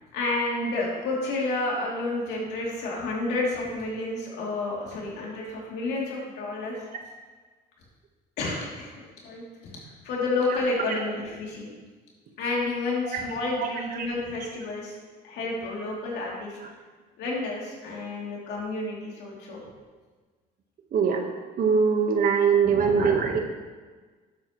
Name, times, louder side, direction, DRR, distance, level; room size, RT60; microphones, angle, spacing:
voice 1, 0.1-6.8 8.4-8.9 9.2-9.7 10.0-11.7 12.4-14.9 15.2-16.6 17.2-19.6 22.7-23.4, left 2 dB, 80° left, -3 dB, 3.0 m, -30 dB
voice 2, 13.6-14.1 16.6-16.7 20.9-21.2 21.6-23.4, right 6 dB, 60° right, 3 dB, 1.4 m, -23 dB
11.5 x 8.3 x 3.2 m, 1.4 s
cardioid pair, 110°, 17 cm